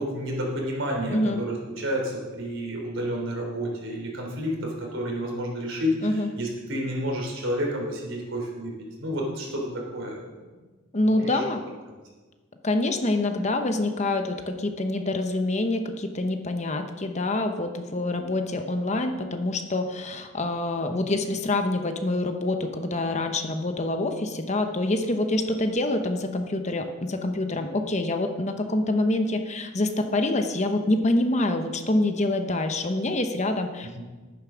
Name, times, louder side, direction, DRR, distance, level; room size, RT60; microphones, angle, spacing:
voice 1, 0.0-8.7 9.0-10.2 11.0-11.4 33.9-34.0, equal, 75° right, -1 dB, 3.6 m, -30 dB
voice 2, 1.1-1.4 6.0-6.3 10.9-11.6 12.6-33.9, left 2 dB, 35° left, 6 dB, 0.9 m, -26 dB
10.5 x 9.5 x 6.3 m, 1.3 s
head